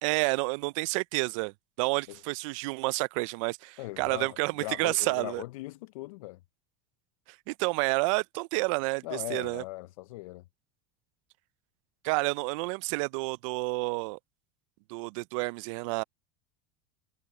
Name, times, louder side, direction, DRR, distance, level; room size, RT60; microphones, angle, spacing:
voice 1, 0.0-1.5 1.8-5.4 7.5-9.6 12.0-14.2 14.9-16.0, right 27 dB, 70° right, 0.4 m, -29 dB
voice 2, 3.8-6.4 9.0-10.4, left 20 dB, 80° left, 0.5 m, -39 dB
supercardioid pair, 120°, 17 cm